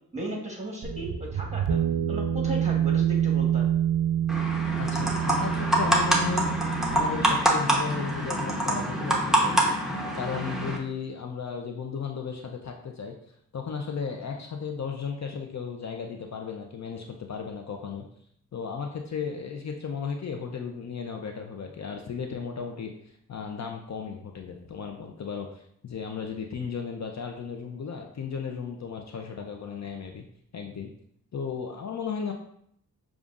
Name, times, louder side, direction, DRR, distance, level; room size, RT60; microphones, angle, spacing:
voice 1, 0.1-1.8 2.1-3.7, right 1 dB, 20° right, -2 dB, 1.4 m, -35 dB
sound 1, 0.8-8.2, right 9 dB, 65° right, 0.5 m, -27 dB
sound 2, 4.3-10.8, right 1 dB, ahead, 0.9 m, -26 dB
voice 2, 4.8-6.5 6.9-13.1 13.5-18.1 18.5-22.9 23.3-30.2 30.5-30.9 31.3-32.3, left 6 dB, 50° left, 2 dB, 0.5 m, -35 dB
6.7 x 2.4 x 2.5 m, 0.70 s
cardioid pair, 55°, 37 cm